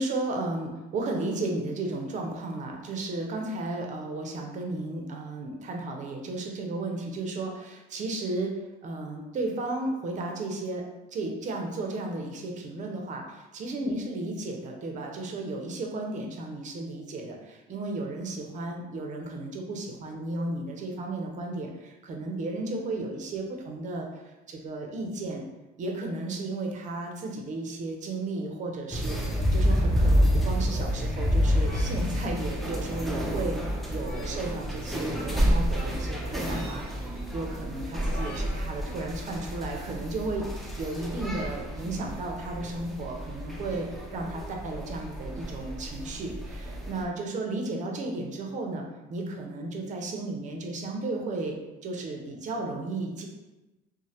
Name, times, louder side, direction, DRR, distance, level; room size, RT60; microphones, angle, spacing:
voice 1, 0.0-8.5 8.8-10.8 11.1-25.4 25.8-29.2 29.5-48.8 49.1-53.3, right 2 dB, 45° right, 1 dB, 0.6 m, -34 dB
sound 1, 28.9-47.0, equal, ahead, 0.5 m, -29 dB
sound 2, 31.6-32.4 33.8-34.6 36.2-37.1 37.9-38.4, equal, 55° left, 0.7 m, -46 dB
3.1 x 2.1 x 2.7 m, 1.1 s
cardioid pair, 110°, 17 cm